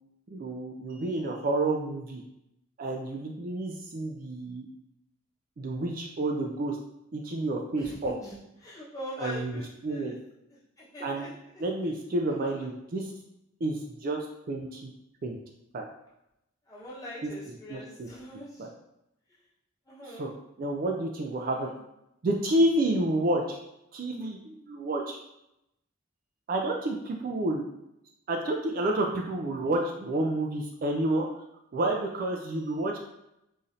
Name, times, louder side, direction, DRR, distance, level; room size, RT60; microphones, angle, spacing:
voice 1, 0.3-2.2 2.8-4.7 5.6-6.8 7.1-8.1 9.2-10.2 11.0-11.3 11.6-13.1 13.6-14.9 15.2-15.4 15.7-15.9 17.2-18.1 18.6-18.7 20.0-20.3 20.6-21.7 22.2-23.6 23.9-25.2 26.5-27.6 28.3-31.3 31.7-33.0, right 1 dB, 45° right, 1 dB, 0.3 m, -30 dB
voice 2, 7.8-8.3 8.6-10.2 10.8-11.3 12.4-12.6 16.7-18.7 19.9-20.3 21.3-21.5, equal, 15° left, -9 dB, 1.1 m, -42 dB
3.9 x 3.1 x 2.6 m, 0.84 s
head